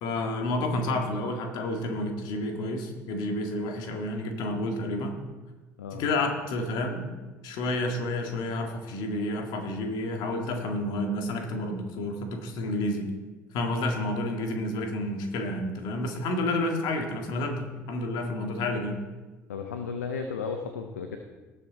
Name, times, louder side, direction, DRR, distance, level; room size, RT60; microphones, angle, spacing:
voice 1, 0.0-5.2 5.9-7.1 7.4-13.1 13.5-19.0, left 1 dB, 60° left, 4 dB, 1.8 m, -30 dB
voice 2, 19.5-21.2, left 5 dB, 80° left, 6 dB, 0.7 m, -34 dB
19.0 x 6.7 x 4.1 m, 1.2 s
figure-of-eight pair, 55°, 8 cm